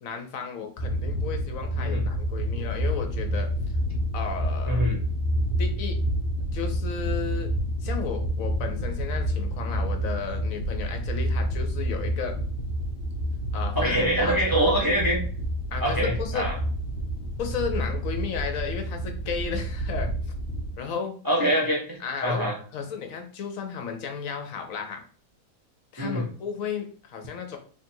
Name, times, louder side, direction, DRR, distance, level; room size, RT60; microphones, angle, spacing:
voice 1, 0.0-3.5 4.1-4.8 5.6-6.0 6.5-7.5 7.8-12.4 13.5-14.4 15.7-16.5 17.4-20.1 20.7-21.2 22.0-22.5 22.7-25.0 25.9-27.6, left 6 dB, 65° left, 5 dB, 1.1 m, -33 dB
sound 1, 0.8-20.7, equal, 40° left, 0.7 m, -28 dB
voice 2, 4.7-5.0 13.7-15.2 15.8-16.5 21.2-22.5 26.0-26.3, right 1 dB, 20° right, -3 dB, 0.8 m, -24 dB
3.2 x 2.6 x 4.4 m, 0.42 s
omnidirectional pair, 1.6 m